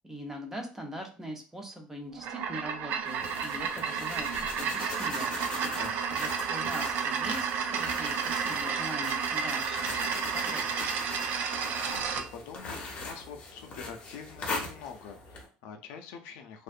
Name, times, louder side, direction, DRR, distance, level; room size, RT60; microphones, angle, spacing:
voice 1, 0.0-5.4 6.2-11.0, equal, 15° right, 3 dB, 0.6 m, -42 dB
sound 1, 2.1-12.3, right 6 dB, 60° right, 0.3 m, -31 dB
sound 2, 3.0-15.5, left 3 dB, 35° left, 0.7 m, -41 dB
voice 2, 5.6-6.0 11.4-16.6, left 6 dB, 80° left, 4 dB, 0.4 m, -46 dB
2.5 x 2.1 x 2.5 m, 0.38 s
cardioid pair, 125°, 3 cm